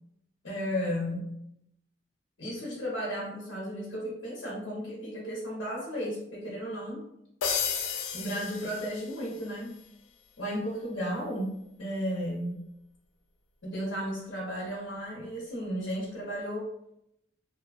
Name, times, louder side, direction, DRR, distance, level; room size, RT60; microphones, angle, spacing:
voice 1, 0.4-1.3 2.4-7.0 8.1-9.7 10.4-12.6 13.6-16.7, equal, 70° left, -6 dB, 0.8 m, -34 dB
sound 1, 7.4-9.5, left 6 dB, 85° left, 0.4 m, -33 dB
2.6 x 2.2 x 2.4 m, 0.79 s
head